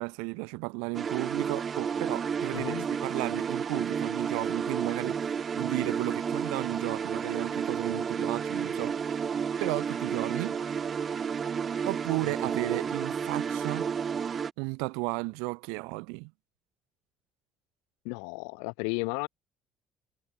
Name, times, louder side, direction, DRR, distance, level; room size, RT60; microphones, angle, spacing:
voice 1, 0.0-5.2 5.6-9.0 9.6-10.6 11.9-13.9 14.6-16.3, right 36 dB, 70° right, 3.7 m, -33 dB
sound 1, 0.9-14.5, right 6 dB, 40° right, 2.1 m, -31 dB
voice 2, 2.5-2.9 12.2-12.3 18.0-19.3, left 40 dB or more, 70° left, 5.6 m, -34 dB
figure-of-eight pair, 50°, 0 cm